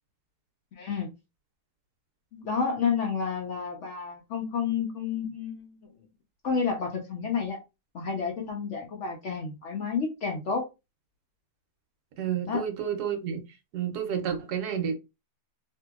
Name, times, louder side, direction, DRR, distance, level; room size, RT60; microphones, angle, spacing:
voice 1, 0.8-1.1 2.3-5.9 6.4-7.6 7.9-10.6 12.5-12.6, left 5 dB, 75° left, 0.6 m, -30 dB
voice 2, 12.2-13.4 13.7-15.0, right 8 dB, 70° right, 1.0 m, -30 dB
2.8 x 2.7 x 2.3 m
omnidirectional pair, 2.0 m